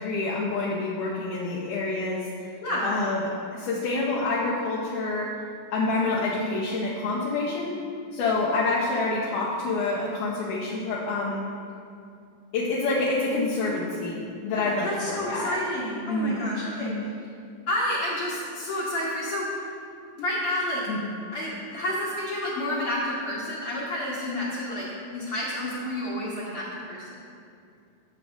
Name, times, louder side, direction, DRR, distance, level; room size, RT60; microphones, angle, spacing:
voice 1, 0.0-2.3 2.8-5.4 5.7-7.7 8.1-11.4 12.5-15.6 16.1-16.5 16.8-17.1 20.9-21.1, left 3 dB, 75° left, -6 dB, 2.2 m, -27 dB
voice 2, 14.5-17.1 17.7-19.5 20.2-20.8 21.3-27.2, left 1 dB, 55° left, -8 dB, 1.7 m, -30 dB
12.5 x 7.4 x 2.5 m, 2.4 s
omnidirectional pair, 4.0 m